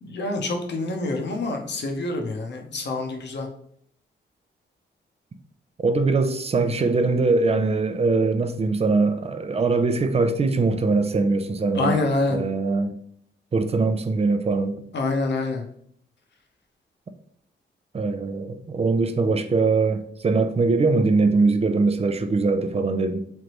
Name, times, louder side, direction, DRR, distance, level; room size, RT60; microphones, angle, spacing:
voice 1, 0.0-3.5 11.7-12.4 14.9-15.6, left 2 dB, 60° left, 0.9 m, -26 dB
voice 2, 5.8-12.0 12.3-13.0 13.5-14.8 17.9-23.2, right 3 dB, 30° right, 0.5 m, -22 dB
3.8 x 3.3 x 3.0 m
cardioid pair, 80°, 20 cm